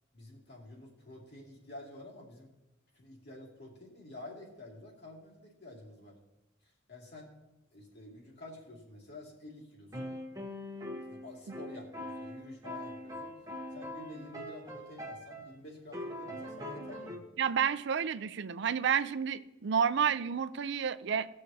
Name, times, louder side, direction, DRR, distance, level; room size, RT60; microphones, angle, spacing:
voice 1, 0.1-2.5 2.9-6.2 6.6-7.3 7.7-10.2 11.1-13.4 13.7-17.2, left 1 dB, 60° left, 2.4 m, -50 dB
sound 1, 9.9-15.5 15.9-17.2, left 1 dB, 20° right, 1.1 m, -42 dB
voice 2, 17.4-21.3, right 7 dB, 65° right, 0.5 m, -30 dB
18.5 x 6.5 x 2.8 m
head